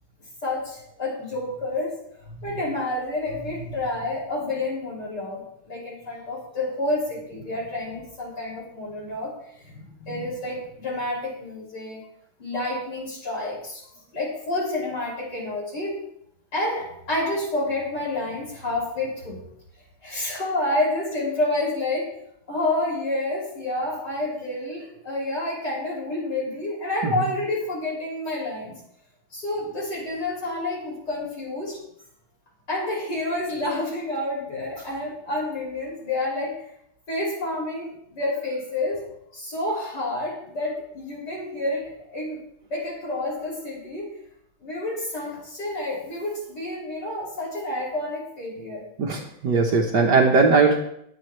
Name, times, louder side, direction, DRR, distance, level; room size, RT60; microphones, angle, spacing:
voice 1, 0.4-12.0 12.4-13.8 14.1-16.0 16.5-19.4 20.0-22.1 22.5-28.7 29.3-31.8 32.7-36.6 37.1-39.0 39.3-42.4 42.7-44.1 44.6-48.8, left 2 dB, 55° left, -5 dB, 6.6 m, -29 dB
voice 2, 49.0-50.8, right 4 dB, 60° right, 1 dB, 1.7 m, -19 dB
21.0 x 9.2 x 3.2 m, 0.73 s
omnidirectional pair, 2.2 m